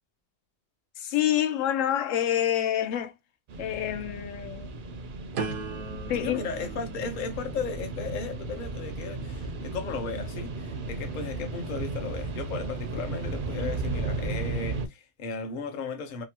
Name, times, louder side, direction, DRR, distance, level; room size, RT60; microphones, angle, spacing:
voice 1, 1.0-3.1 3.6-4.7 6.1-6.4 13.6-13.7, left 11 dB, 85° left, 0.9 m, -27 dB
sound 1, 3.5-14.9, right 3 dB, 55° right, 0.6 m, -35 dB
sound 2, 5.3-11.2 11.7-12.2, right 4 dB, 90° right, 1.1 m, -41 dB
voice 2, 6.2-16.2, left 4 dB, 50° left, 0.8 m, -35 dB
2.9 x 2.4 x 2.8 m
omnidirectional pair, 1.3 m